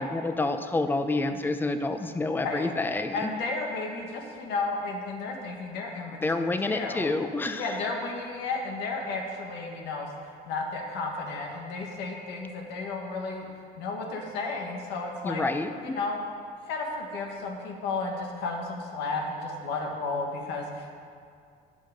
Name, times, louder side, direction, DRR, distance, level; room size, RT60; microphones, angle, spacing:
voice 1, 0.0-3.3 6.2-7.7 15.2-16.0, left 2 dB, 10° left, 8 dB, 0.6 m, -28 dB
voice 2, 2.4-2.7 3.1-7.1 7.5-13.5 13.8-15.4 15.8-16.2 16.7-21.0, left 3 dB, 90° left, 1 dB, 1.8 m, -33 dB
17.0 x 5.8 x 5.2 m, 2.3 s
cardioid pair, 110°, 17 cm